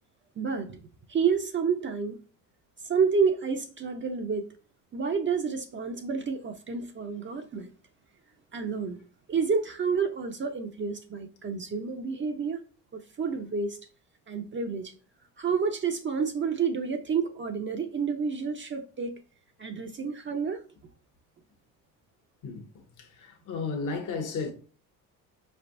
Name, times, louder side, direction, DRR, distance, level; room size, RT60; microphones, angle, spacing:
voice 1, 0.4-0.8 1.1-2.2 2.8-4.5 4.9-7.7 8.5-9.0 9.3-12.6 12.9-13.8 14.3-14.9 15.4-19.2 19.6-20.6, right 5 dB, 30° right, 0.6 m, -29 dB
voice 2, 23.0-24.5, left 4 dB, 55° left, 1.2 m, -33 dB
5.0 x 3.4 x 2.5 m
supercardioid pair, 85°, 36 cm